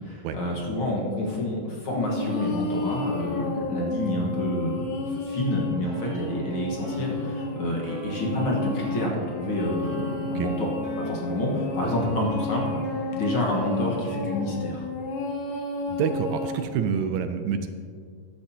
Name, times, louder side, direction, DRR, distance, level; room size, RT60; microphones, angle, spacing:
voice 1, 0.0-5.0 5.3-10.7 11.0-12.8 13.1-14.9, left 1 dB, 50° left, -2 dB, 1.9 m, -28 dB
sound 1, 1.9-16.7, left 2 dB, 70° left, 2.3 m, -32 dB
sound 2, 5.8-13.7, right 2 dB, 60° right, 2.8 m, -42 dB
voice 2, 15.9-17.7, right 7 dB, 80° right, 8 dB, 1.9 m, -27 dB
13.5 x 10.5 x 2.8 m, 2.1 s
omnidirectional pair, 3.4 m